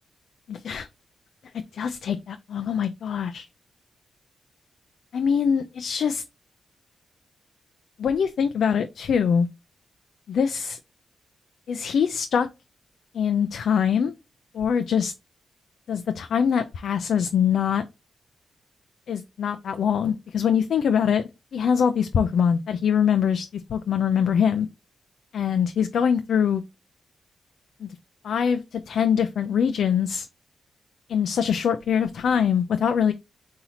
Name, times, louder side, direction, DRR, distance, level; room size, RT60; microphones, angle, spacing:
voice 1, 0.5-0.9 1.7-3.5 5.1-6.2 8.0-9.5 10.3-10.8 11.7-12.5 13.1-14.1 14.5-15.1 15.9-17.8 19.1-24.7 25.3-26.6 27.8-27.9 28.2-30.3 31.1-33.1, left 7 dB, 75° left, 0.3 m, -23 dB
4.1 x 2.7 x 4.2 m
supercardioid pair, 45°, 0 cm